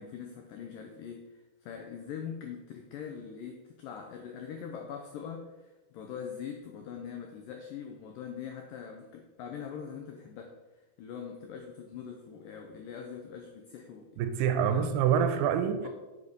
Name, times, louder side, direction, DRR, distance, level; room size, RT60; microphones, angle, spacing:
voice 1, 0.0-10.6 11.0-14.2 14.6-14.9 15.8-15.9, left 7 dB, 85° left, 2 dB, 1.9 m, -42 dB
voice 2, 14.2-15.9, right 8 dB, 85° right, 8 dB, 2.6 m, -26 dB
8.5 x 5.1 x 5.4 m, 1.1 s
omnidirectional pair, 4.8 m